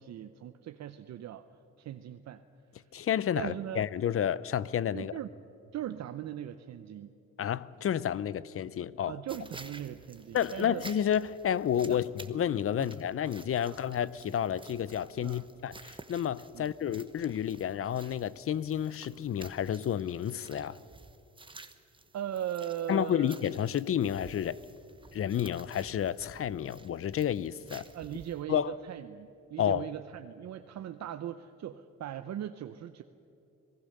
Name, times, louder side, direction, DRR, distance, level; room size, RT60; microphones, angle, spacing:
voice 1, 0.0-1.5 1.8-2.4 3.4-3.8 4.9-5.3 5.7-7.1 9.1-10.8 11.9-12.0 12.8-12.9 13.6-14.0 15.2-15.5 16.5-16.7 22.1-23.4 27.9-33.0, right 11 dB, 60° right, 0.7 m, -39 dB
voice 2, 2.9-5.1 7.4-9.2 10.3-20.8 22.9-24.6 25.1-27.9 28.5-28.8 29.6-29.9, left 9 dB, 50° left, 0.6 m, -30 dB
sound 1, 9.3-28.4, right 3 dB, 15° right, 1.1 m, -52 dB
26.5 x 18.5 x 6.7 m
cardioid pair, 90°, 30 cm